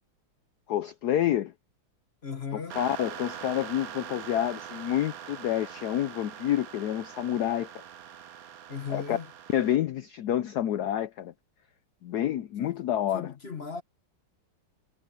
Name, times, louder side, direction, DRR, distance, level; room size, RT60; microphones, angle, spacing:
voice 1, 0.7-1.5 2.7-7.8 8.9-9.2 9.5-11.3 12.0-13.3, left 11 dB, 80° left, 0.8 m, -28 dB
voice 2, 2.2-2.8 8.7-9.3 12.6-12.8 13.1-13.8, left 6 dB, 35° left, 1.3 m, -37 dB
sound 1, 2.7-9.8, right 9 dB, 60° right, 1.0 m, -43 dB
omnidirectional pair, 2.4 m